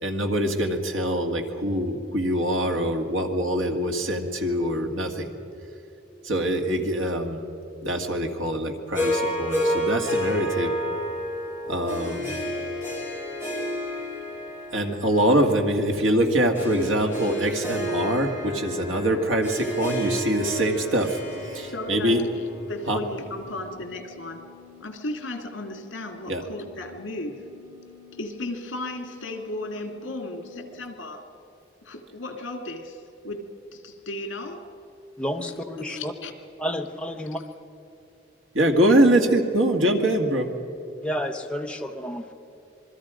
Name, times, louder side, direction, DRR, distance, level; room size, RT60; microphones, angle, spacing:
voice 1, 0.0-5.3 6.2-7.4 7.8-10.7 11.7-12.4 14.7-21.2 21.5-22.2 22.9-23.0 26.3-26.4 38.5-40.5, right 1 dB, 80° right, 3 dB, 2.1 m, -24 dB
Harp, 8.9-23.3, equal, 10° right, 5.0 m, -31 dB
sound 1, 14.4-30.6, left 10 dB, 40° right, 6.1 m, -52 dB
voice 2, 21.7-22.2 22.7-24.4 24.8-27.4 28.1-31.3 31.8-34.7 35.4-36.3, left 1 dB, 75° left, 5 dB, 2.3 m, -35 dB
voice 3, 35.2-36.1 36.6-37.4 41.0-42.3, equal, 5° left, 2 dB, 0.9 m, -30 dB
27.0 x 22.0 x 5.1 m, 2.9 s
head